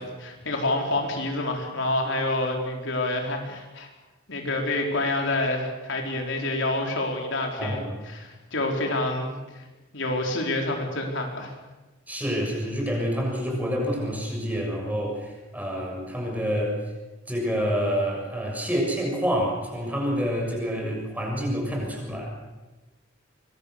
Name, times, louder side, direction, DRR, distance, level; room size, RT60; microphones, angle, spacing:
voice 1, 0.0-3.9 4.3-9.6 9.9-11.5, left 2 dB, 70° left, 1 dB, 4.4 m, -28 dB
voice 2, 7.6-7.9 12.1-16.8 17.3-22.3, equal, 10° right, -1 dB, 7.0 m, -27 dB
25.5 x 23.0 x 6.8 m, 1.1 s
head